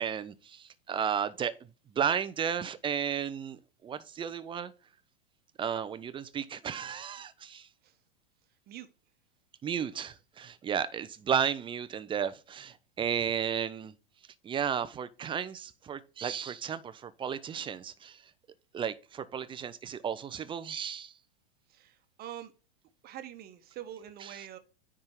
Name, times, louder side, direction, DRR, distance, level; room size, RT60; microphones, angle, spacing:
voice 1, 0.0-1.5 1.9-4.7 5.6-7.7 9.6-13.9 14.4-18.2 18.7-21.1 24.2-24.4, right 8 dB, 15° right, 0.6 m, -33 dB
voice 2, 21.7-22.5 23.0-24.6, right 11 dB, 30° right, 1.1 m, -45 dB
9.6 x 3.7 x 4.5 m
hypercardioid pair, 100°, 29 cm